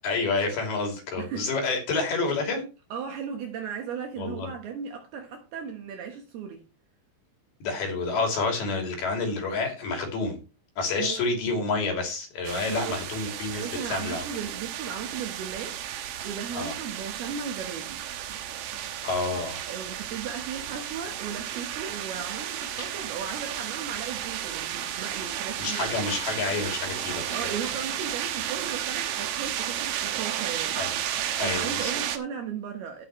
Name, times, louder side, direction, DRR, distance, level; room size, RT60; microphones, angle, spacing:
voice 1, 0.0-2.6 4.2-4.5 7.6-10.4 10.8-14.2 16.6-16.7 19.0-19.7 25.6-27.5 30.8-31.0 31.4-31.9, left 3 dB, 55° left, 4.6 m, -29 dB
voice 2, 1.2-1.5 2.9-6.6 11.0-11.2 12.7-13.0 13.3-18.1 19.6-25.9 27.3-30.8 31.4-33.1, right 7 dB, 70° right, 2.6 m, -36 dB
sound 1, 12.4-32.2, right 11 dB, 85° right, 2.0 m, -33 dB
16.0 x 7.0 x 3.1 m
omnidirectional pair, 5.7 m